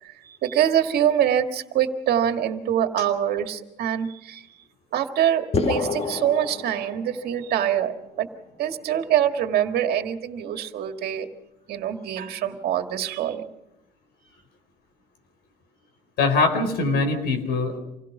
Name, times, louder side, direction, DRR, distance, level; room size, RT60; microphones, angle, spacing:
voice 1, 0.0-4.5 4.9-8.3 8.6-11.3 11.7-13.5, right 10 dB, 70° right, 6 dB, 1.8 m, -24 dB
sound 1, 5.5-7.5, left 4 dB, 35° left, 1.6 m, -27 dB
voice 2, 16.2-17.8, left 3 dB, 75° left, 5 dB, 4.3 m, -22 dB
26.5 x 17.0 x 6.0 m, 0.87 s
cardioid pair, 110°, 17 cm